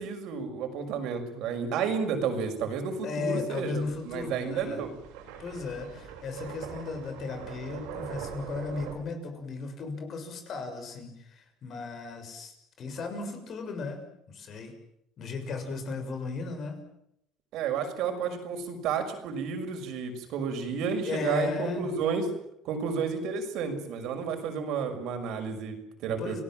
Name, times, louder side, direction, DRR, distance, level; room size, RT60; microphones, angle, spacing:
voice 1, 0.0-4.9 17.5-22.3 22.6-26.4, right 6 dB, 65° right, 5 dB, 6.1 m, -31 dB
voice 2, 3.0-4.8 5.4-14.0 14.3-14.7 15.2-16.8 21.0-21.9 26.2-26.4, left 4 dB, 40° left, 6 dB, 6.8 m, -35 dB
sound 1, 3.7-8.9, right 8 dB, 90° right, 7.4 m, -43 dB
29.5 x 19.0 x 7.6 m, 0.77 s
cardioid pair, 135°, 0 cm